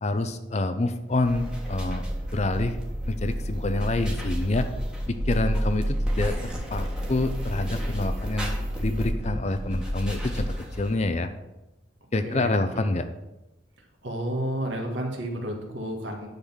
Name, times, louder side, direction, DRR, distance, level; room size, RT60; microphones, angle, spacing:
voice 1, 0.0-2.0 2.3-2.8 3.1-4.7 5.1-11.3 12.1-13.1, left 2 dB, 35° left, 9 dB, 0.6 m, -27 dB
sound 1, 1.1-11.0, equal, 5° right, 1.4 m, -30 dB
voice 2, 12.2-12.8 14.0-16.3, right 1 dB, 70° right, 1 dB, 1.9 m, -31 dB
10.0 x 4.1 x 7.3 m, 0.97 s
head